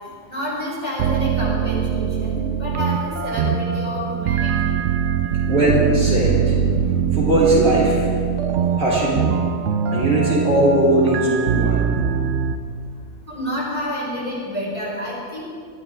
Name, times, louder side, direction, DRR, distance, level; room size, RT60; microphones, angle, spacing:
voice 1, 0.3-4.7 13.3-15.4, left 1 dB, 20° left, -6 dB, 4.6 m, -29 dB
sound 1, 1.0-12.6, right 8 dB, 60° right, 0.9 m, -22 dB
voice 2, 5.5-6.6 7.1-8.1 8.6-9.3 9.9-11.8, right 1 dB, 45° right, -6 dB, 3.3 m, -19 dB
20.0 x 13.5 x 3.5 m, 2.1 s
omnidirectional pair, 1.5 m